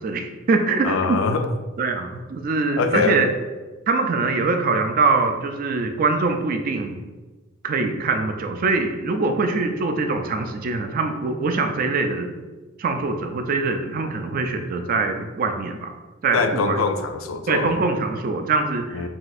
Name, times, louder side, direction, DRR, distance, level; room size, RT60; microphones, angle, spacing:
voice 1, 0.0-1.2 1.8-3.3 3.9-7.0 7.6-12.3 12.8-15.9 16.2-16.8 17.5-19.1, right 3 dB, 45° right, 6 dB, 0.3 m, -23 dB
voice 2, 0.8-1.5 2.8-3.3 16.3-17.8 18.9-19.1, left 4 dB, 80° left, 8 dB, 0.4 m, -23 dB
5.9 x 2.3 x 2.6 m, 1.2 s
head